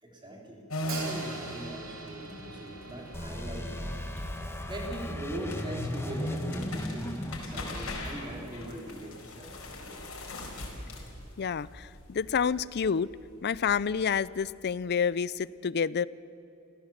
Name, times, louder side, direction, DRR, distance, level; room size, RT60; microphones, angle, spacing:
voice 1, 0.0-4.0 4.7-7.2 7.4-10.0, right 1 dB, 20° right, 0 dB, 4.0 m, -41 dB
sound 1, 0.7-14.9, left 1 dB, 75° left, 4.4 m, -42 dB
Hi-hat, 0.9-4.8, right 5 dB, 70° right, 3.3 m, -45 dB
sound 2, 3.1-9.7, left 1 dB, 10° left, 1.5 m, -37 dB
voice 2, 11.4-13.1 13.4-16.1, left 6 dB, 50° left, 20 dB, 0.5 m, -29 dB
28.0 x 16.5 x 7.4 m, 3.0 s
head